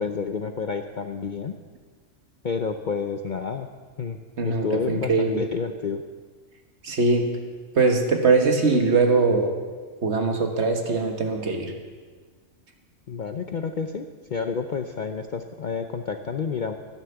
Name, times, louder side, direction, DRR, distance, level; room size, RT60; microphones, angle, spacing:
voice 1, 0.0-1.6 2.4-3.7 4.0-4.2 4.4-6.0 13.1-16.7, left 5 dB, 50° left, 6 dB, 0.6 m, -29 dB
voice 2, 4.4-5.4 6.8-7.3 7.7-9.5 10.0-11.7, right 3 dB, 55° right, 4 dB, 1.7 m, -21 dB
12.5 x 10.0 x 7.0 m, 1.5 s
omnidirectional pair, 1.4 m